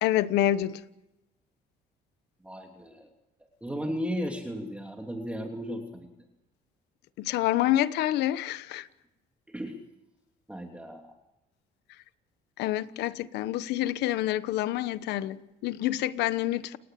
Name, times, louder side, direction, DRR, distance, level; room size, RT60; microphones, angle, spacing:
voice 1, 0.0-0.8 7.2-8.8 12.6-16.8, left 13 dB, 85° left, 1.2 m, -27 dB
voice 2, 2.4-3.1 3.6-6.1 9.5-9.8 10.5-11.1, equal, 5° right, 3.2 m, -35 dB
30.0 x 18.0 x 7.7 m
cardioid pair, 110°, 17 cm